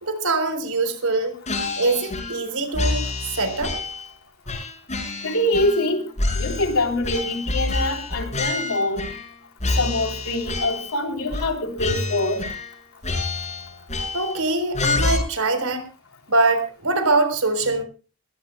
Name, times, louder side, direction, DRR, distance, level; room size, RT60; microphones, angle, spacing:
voice 1, 0.0-1.4 1.8-3.1 3.3-3.8 14.1-15.8 16.3-17.8, right 2 dB, 85° right, 10 dB, 4.0 m, -23 dB
sound 1, 1.5-2.5 2.7-4.1 4.5-5.9 6.2-9.3 9.6-11.0 11.3-11.5 11.8-12.8 13.0-14.4 14.7-15.2, left 2 dB, 30° left, 5.9 m, -27 dB
voice 2, 5.2-6.1 6.3-9.1 9.8-12.4, left 1 dB, 75° left, 3 dB, 3.5 m, -24 dB
22.0 x 17.0 x 2.2 m, 0.34 s
head